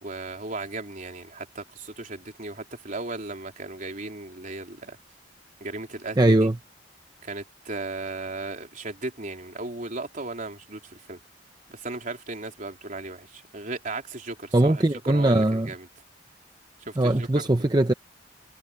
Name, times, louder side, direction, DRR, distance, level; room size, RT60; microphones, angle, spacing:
voice 1, 0.0-5.0 5.6-6.5 7.2-11.2 11.7-15.9 16.9-17.4, right 2 dB, 45° right, 3.9 m, -36 dB
voice 2, 6.2-6.6 14.5-15.7 17.0-17.9, right 1 dB, 25° right, 0.7 m, -20 dB
head